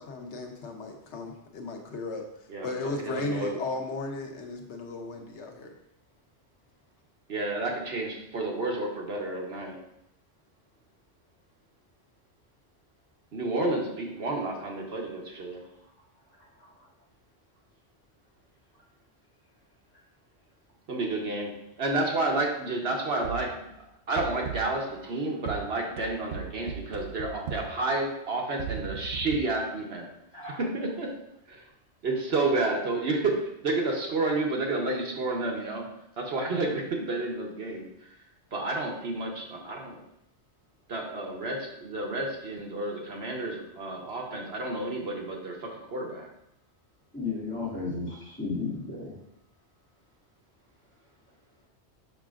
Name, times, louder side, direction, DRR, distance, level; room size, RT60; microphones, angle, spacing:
voice 1, 0.0-2.3 2.6-5.7, left 2 dB, 80° left, 3 dB, 1.1 m, -35 dB
voice 2, 3.0-3.6 7.3-9.8 13.3-15.6 20.9-21.5 21.8-23.7 24.1-30.1 30.6-31.1 31.5-31.6 32.0-33.3 33.6-35.8 36.2-37.8 38.5-40.0 40.9-46.3, right 2 dB, 65° right, 0 dB, 1.2 m, -30 dB
sound 1, 23.2-23.6 24.2-24.9 25.5-27.9 28.6-29.4, right 9 dB, 85° right, 0.9 m, -38 dB
voice 3, 47.1-49.2, left 4 dB, 10° left, -9 dB, 2.3 m, -33 dB
6.5 x 5.9 x 2.4 m, 0.80 s
omnidirectional pair, 1.2 m